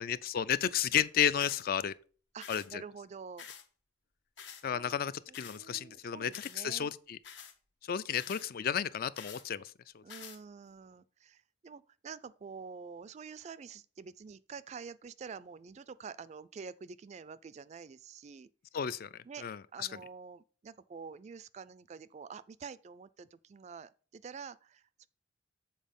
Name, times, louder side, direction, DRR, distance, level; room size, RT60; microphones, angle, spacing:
voice 1, 0.0-1.9 2.5-2.8 4.6-7.2 7.8-10.0 18.7-19.9, left 8 dB, 50° left, 0.4 m, -33 dB
sound 1, 1.4-1.7 2.4-2.7 3.4-3.7 4.4-4.6 5.3-5.6 6.3-6.6 7.2-7.5 8.2-8.5 9.2-9.4 10.1-10.4, left 7 dB, 70° left, 1.0 m, -48 dB
voice 2, 2.3-3.5 4.7-4.9 5.3-6.9 10.0-18.5 19.3-19.5 19.7-25.1, right 5 dB, 35° right, 0.3 m, -47 dB
7.4 x 4.3 x 5.2 m
head